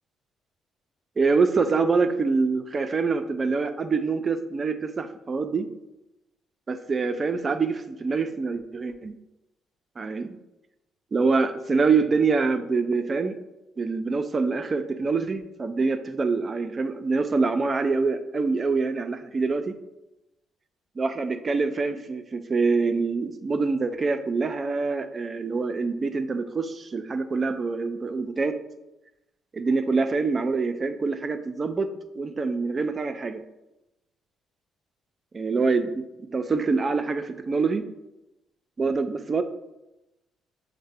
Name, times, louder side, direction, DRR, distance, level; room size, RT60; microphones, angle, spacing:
voice 1, 1.2-5.7 6.7-9.2 10.0-10.4 11.1-13.4 13.8-19.8 21.0-28.6 29.5-31.9 32.1-33.4 35.3-36.0 36.3-37.8 38.8-39.4, right 4 dB, 35° right, 8 dB, 0.4 m, -25 dB
6.3 x 2.1 x 3.4 m, 0.94 s
cardioid pair, 85°, 0 cm